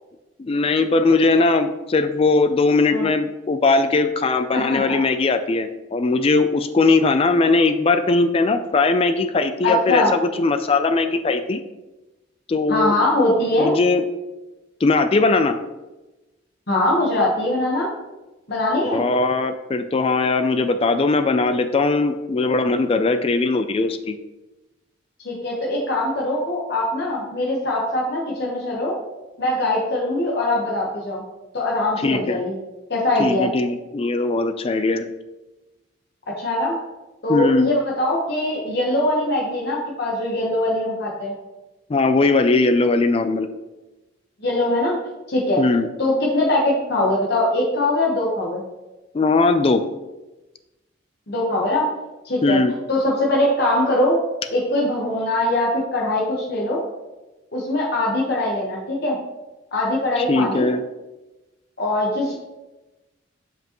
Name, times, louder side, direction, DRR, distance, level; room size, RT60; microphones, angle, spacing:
voice 1, 0.4-11.6 12.5-12.9 13.6-14.0 14.8-15.6 18.9-24.2 32.0-32.4 33.2-35.1 37.3-37.7 41.9-43.5 45.6-45.9 49.1-49.8 52.4-52.7 60.2-60.8, left 3 dB, 30° left, 9 dB, 0.3 m, -19 dB
voice 2, 4.5-5.0 9.6-10.1 12.7-13.7 16.7-17.9 18.5-19.0 25.2-28.9 29.4-31.2 31.5-32.5 32.9-33.5 36.4-36.7 37.2-41.3 44.4-45.6 46.0-48.6 51.3-51.9 52.2-52.6 52.9-54.2 54.5-56.8 57.5-59.2 59.7-60.7 61.8-62.3, left 1 dB, 55° left, -4 dB, 1.2 m, -22 dB
7.5 x 5.4 x 3.0 m, 1.1 s
head